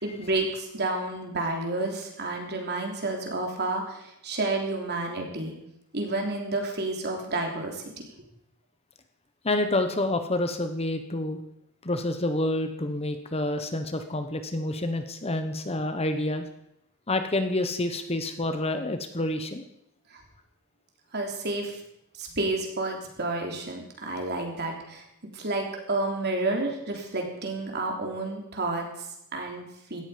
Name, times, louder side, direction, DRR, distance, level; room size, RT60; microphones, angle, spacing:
voice 1, 0.0-5.6 5.9-7.8 20.1-20.2 21.1-21.8 22.2-25.0 25.3-30.0, right 2 dB, 45° right, 2 dB, 3.4 m, -30 dB
voice 2, 9.4-11.4 11.8-16.5 17.1-19.7, left 1 dB, 25° left, 8 dB, 1.0 m, -28 dB
17.0 x 13.5 x 5.1 m, 0.80 s
head